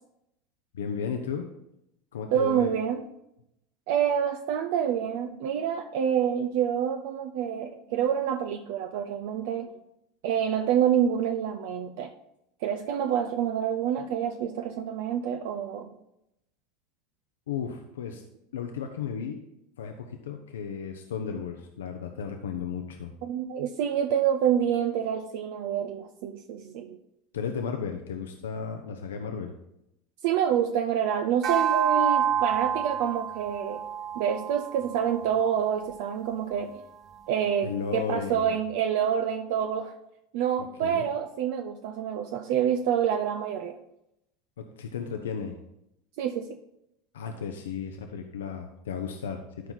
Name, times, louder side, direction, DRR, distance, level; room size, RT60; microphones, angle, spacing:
voice 1, 0.7-1.5 2.1-2.7 17.5-18.2 18.5-19.4 19.8-23.1 27.3-29.5 37.6-38.6 40.8-41.0 44.6-45.5 47.1-49.7, left 6 dB, 80° left, 5 dB, 0.7 m, -34 dB
voice 2, 2.3-3.0 3.9-9.7 10.2-12.1 12.6-15.9 23.2-27.0 30.2-33.9 34.1-36.8 37.3-39.9 40.3-43.8 46.2-46.5, right 9 dB, 65° right, 6 dB, 0.6 m, -27 dB
sound 1, 31.4-36.0, right 9 dB, 45° right, 1.0 m, -28 dB
12.5 x 4.6 x 4.0 m, 0.82 s
hypercardioid pair, 85°, 0 cm